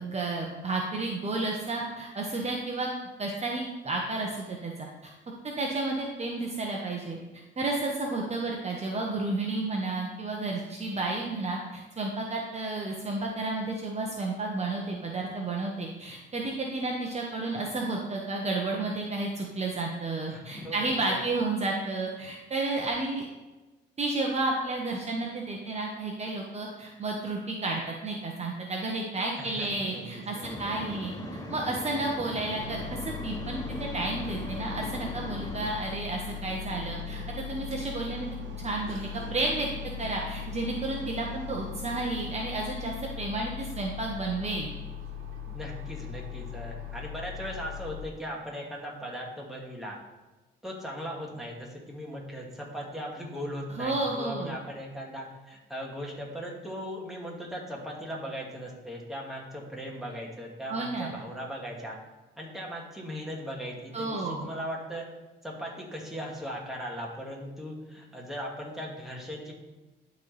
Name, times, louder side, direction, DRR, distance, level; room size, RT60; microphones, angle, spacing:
voice 1, 0.0-2.9 3.2-5.1 5.6-7.2 7.6-23.3 24.0-31.1 31.5-38.3 38.6-39.7 40.0-44.7 53.8-54.6 60.7-61.2 63.9-64.5, right 2 dB, 35° right, -1 dB, 1.0 m, -32 dB
voice 2, 20.3-21.2 29.4-30.6 45.5-50.0 50.6-62.0 62.4-65.1 65.4-69.5, equal, ahead, -3 dB, 1.9 m, -38 dB
sound 1, 29.6-42.5, right 6 dB, 65° right, 0.9 m, -45 dB
sound 2, 30.4-35.7, left 2 dB, 20° left, 0.7 m, -40 dB
sound 3, 32.6-48.0, left 9 dB, 90° right, 1.2 m, -39 dB
11.5 x 4.1 x 3.4 m, 1.1 s
cardioid pair, 90°, 20 cm